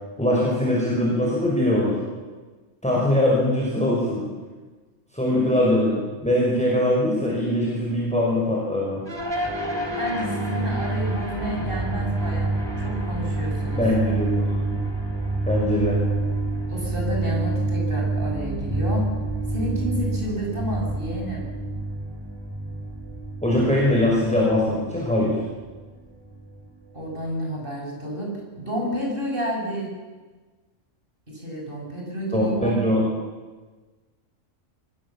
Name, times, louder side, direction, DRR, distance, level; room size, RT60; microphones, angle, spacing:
voice 1, 0.2-2.0 2.8-4.3 5.1-9.0 13.8-14.8 15.5-16.0 23.4-25.4 32.3-33.0, left 1 dB, 5° left, -4 dB, 5.6 m, -22 dB
sound 1, 9.0-27.4, right 2 dB, 20° right, 3.2 m, -28 dB
voice 2, 10.0-13.8 16.7-19.1 19.5-21.4 26.9-29.9 31.3-32.8, right 1 dB, 40° right, -1 dB, 7.2 m, -30 dB
25.0 x 20.0 x 7.3 m, 1.3 s
omnidirectional pair, 1.4 m